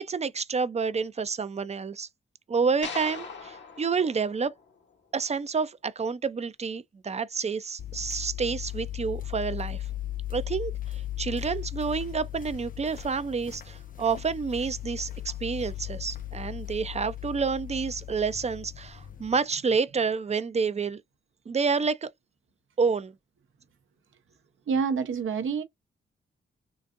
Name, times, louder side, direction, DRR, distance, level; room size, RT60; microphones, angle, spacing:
voice 1, 0.0-2.1 2.5-4.5 5.1-9.8 10.3-21.0 21.5-22.1 22.8-23.1, right 5 dB, 30° right, 0.5 m, -29 dB
sound 1, 2.8-5.2, left 5 dB, 60° left, 1.1 m, -41 dB
sound 2, 7.8-19.4, left 13 dB, 40° left, 0.5 m, -37 dB
voice 2, 24.7-25.6, right 6 dB, 70° right, 0.9 m, -27 dB
3.9 x 2.5 x 2.5 m
supercardioid pair, 50°, 21 cm